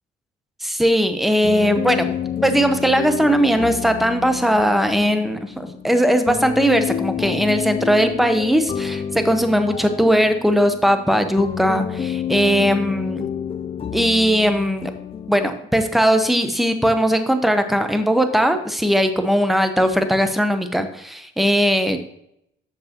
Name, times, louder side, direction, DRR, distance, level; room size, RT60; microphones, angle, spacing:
voice 1, 0.6-2.1 2.4-13.3 13.9-14.9 15.3-22.0, equal, ahead, 8 dB, 0.8 m, -19 dB
sound 1, 1.4-15.5, left 8 dB, 30° left, 0.4 m, -29 dB
7.9 x 6.5 x 2.9 m, 0.77 s
cardioid pair, 90°, 20 cm